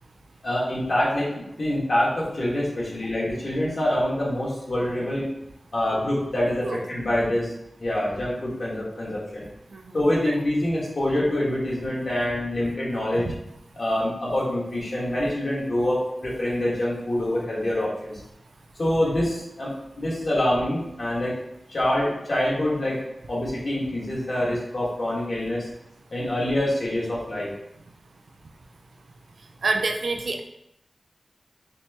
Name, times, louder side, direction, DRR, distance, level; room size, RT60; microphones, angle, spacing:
voice 1, 0.4-5.3 5.7-7.5 7.8-9.4 9.9-13.2 13.7-18.1 18.8-21.4 21.7-23.0 23.3-25.7 26.1-27.5, left 1 dB, 65° left, -6 dB, 1.3 m, -25 dB
voice 2, 29.6-30.4, right 3 dB, 85° right, 5 dB, 0.3 m, -26 dB
4.2 x 2.2 x 2.8 m, 0.82 s
wide cardioid pair, 60°, 0 cm